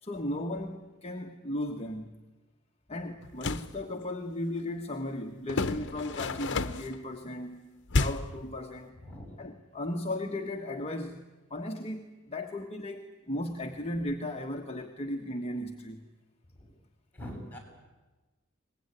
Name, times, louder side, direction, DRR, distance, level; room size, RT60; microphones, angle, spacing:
voice 1, 0.0-2.2 2.9-8.9 9.4-11.2 11.5-16.0, left 1 dB, 30° left, 3 dB, 1.4 m, -36 dB
sound 1, 3.2-3.7 5.5-7.0 7.9-8.4, left 3 dB, 60° left, 1.1 m, -30 dB
voice 2, 8.9-9.4 16.5-16.7 17.1-17.6, equal, 10° left, 1 dB, 7.5 m, -43 dB
23.0 x 20.0 x 9.8 m, 1.2 s
head